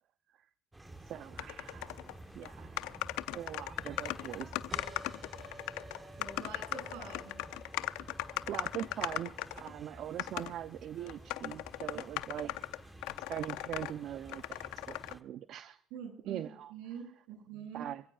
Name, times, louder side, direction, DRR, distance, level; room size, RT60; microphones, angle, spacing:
sound 1, 0.7-15.2, right 1 dB, 15° right, 1.3 m, -52 dB
voice 1, 1.1-2.0 2.3-2.7 3.3-4.5 8.5-12.5 13.3-14.6 14.9-15.8 16.3-16.7 17.7-18.0, right 11 dB, 65° right, 12 dB, 0.6 m, -41 dB
sound 2, 1.4-2.2 2.4-2.5 2.8-9.7 10.2-10.5 11.1-13.9 14.3-15.1, left 17 dB, 85° left, 0.6 m, -38 dB
sound 3, 4.7-9.9, right 2 dB, 30° right, 4.3 m, -54 dB
voice 2, 6.2-7.4 11.9-12.0 15.9-17.9, right 6 dB, 85° right, 5 dB, 7.1 m, -45 dB
27.5 x 16.0 x 2.5 m, 0.66 s
supercardioid pair, 75°, 0 cm